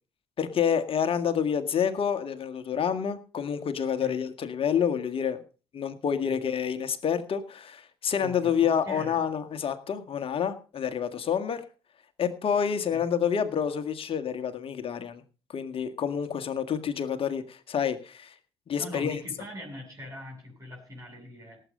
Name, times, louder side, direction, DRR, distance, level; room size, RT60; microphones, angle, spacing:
voice 1, 0.4-5.4 5.7-11.6 12.2-15.2 15.5-18.4 18.7-19.2, left 7 dB, 45° left, 9 dB, 1.9 m, -28 dB
voice 2, 8.2-9.2 12.9-13.1 18.8-21.6, left 1 dB, 25° right, 0 dB, 7.3 m, -42 dB
18.0 x 8.1 x 5.0 m, 0.37 s
hypercardioid pair, 55°, 13 cm